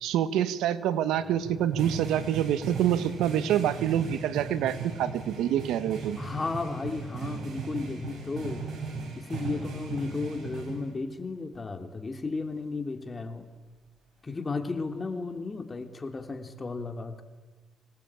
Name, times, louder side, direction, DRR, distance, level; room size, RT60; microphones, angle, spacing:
voice 1, 0.0-6.2, right 10 dB, 90° right, 13 dB, 1.3 m, -26 dB
sound 1, 1.2-11.2, right 5 dB, 60° right, 5.7 m, -37 dB
voice 2, 6.2-8.7 9.1-13.5 14.2-17.2, left 3 dB, 30° left, 6 dB, 2.8 m, -34 dB
25.5 x 19.0 x 8.8 m, 1.3 s
cardioid pair, 90°, 0 cm